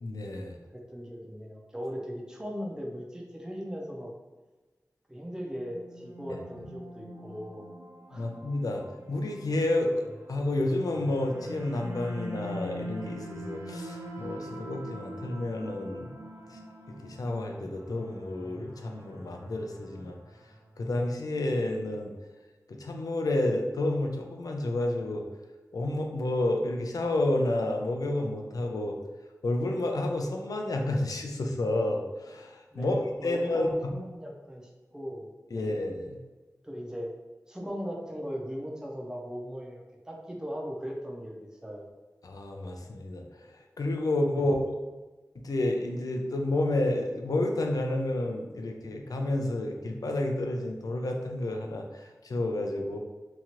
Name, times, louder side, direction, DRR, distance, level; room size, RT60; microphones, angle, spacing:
voice 1, 0.0-0.6 8.1-8.8 9.1-16.2 16.5-16.6 16.9-20.2 20.8-22.1 22.7-25.2 25.7-29.0 29.4-33.7 35.5-36.2 42.2-43.2 43.8-44.8 45.4-53.0, left 1 dB, 75° left, 2 dB, 0.4 m, -30 dB
voice 2, 0.7-4.1 5.1-7.7 8.1-8.3 32.7-35.8 36.6-37.1 37.5-41.9 44.3-44.5, equal, 10° right, -1 dB, 0.6 m, -38 dB
sound 1, 5.5-20.8, equal, 55° right, 0.5 m, -43 dB
2.8 x 2.4 x 2.9 m, 1.2 s
wide cardioid pair, 85°, 6 cm